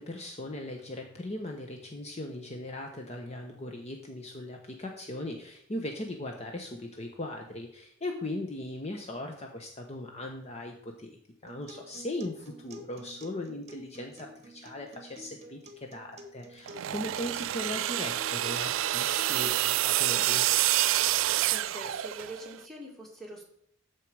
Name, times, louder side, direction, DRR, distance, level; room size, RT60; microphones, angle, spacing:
voice 1, 0.0-11.1 11.4-20.5, left 1 dB, 35° left, 3 dB, 0.9 m, -39 dB
Acoustic guitar, 11.5-19.5, equal, 35° right, 1.1 m, -50 dB
sound 1, 16.7-22.5, right 14 dB, 80° right, 0.3 m, -28 dB
voice 2, 21.5-23.4, right 1 dB, ahead, -2 dB, 2.2 m, -43 dB
13.0 x 4.7 x 4.8 m, 0.67 s
head